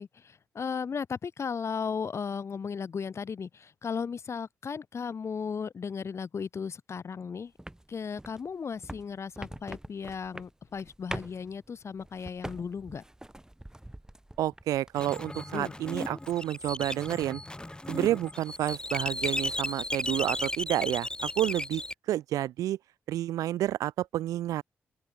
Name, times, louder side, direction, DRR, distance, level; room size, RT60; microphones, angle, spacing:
voice 1, 0.0-7.5 7.9-13.0 15.5-15.7, left 6 dB, 55° left, 1.7 m, -36 dB
sound 1, 7.6-15.1 15.5-16.4 16.6-17.3, right 1 dB, 10° right, 7.6 m, -44 dB
voice 2, 14.4-17.4 17.9-21.8 22.1-22.8 23.1-24.6, right 13 dB, 85° right, 0.8 m, -30 dB
sound 2, 15.0-21.9, left 1 dB, 15° left, 3.8 m, -35 dB
supercardioid pair, 50°, 6 cm